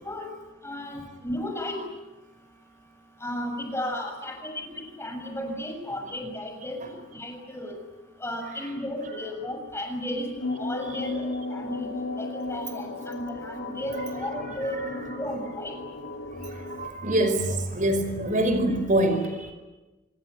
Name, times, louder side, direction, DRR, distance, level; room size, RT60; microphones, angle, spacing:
voice 1, 0.6-1.8 3.2-6.8 7.1-7.7 8.2-10.3 10.6-11.9 12.2-15.7, left 1 dB, 15° left, 3 dB, 6.9 m, -34 dB
sound 1, 10.4-16.9, left 2 dB, 60° left, 1.9 m, -35 dB
voice 2, 16.5-19.5, right 1 dB, 40° right, 7 dB, 5.1 m, -25 dB
27.5 x 20.0 x 9.3 m, 1.1 s
head